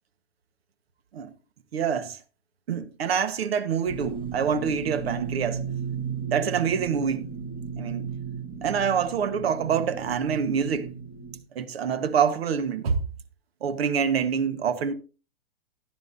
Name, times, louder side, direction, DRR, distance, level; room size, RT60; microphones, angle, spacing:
voice 1, 1.7-2.2 2.7-5.6 6.3-7.3 7.8-8.1 8.6-10.9 11.5-13.0 13.6-14.9, right 7 dB, 75° right, 1.3 m, -26 dB
sound 1, 3.9-11.4, right 6 dB, 15° right, 2.2 m, -35 dB
14.5 x 10.5 x 2.6 m
hypercardioid pair, 135°, 31 cm